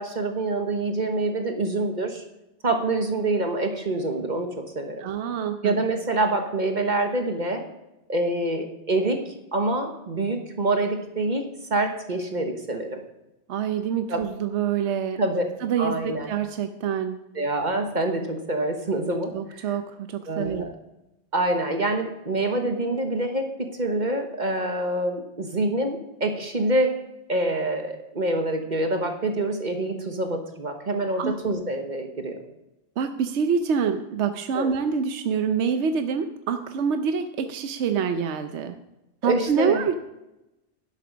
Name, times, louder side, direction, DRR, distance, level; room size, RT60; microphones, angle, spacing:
voice 1, 0.0-2.2 2.6-5.0 5.6-7.6 8.1-13.0 14.1-14.2 15.2-15.4 15.8-16.3 17.3-19.6 20.3-20.7 21.3-27.0 27.3-32.4 34.5-34.7 39.2-39.8, right 2 dB, 40° right, 4 dB, 1.3 m, -26 dB
voice 2, 5.0-5.7 13.5-15.2 15.6-17.2 19.3-20.7 31.2-31.4 33.0-38.8 39.2-40.0, right 6 dB, 75° right, 8 dB, 1.0 m, -26 dB
11.5 x 7.3 x 6.2 m, 0.93 s
omnidirectional pair, 1.2 m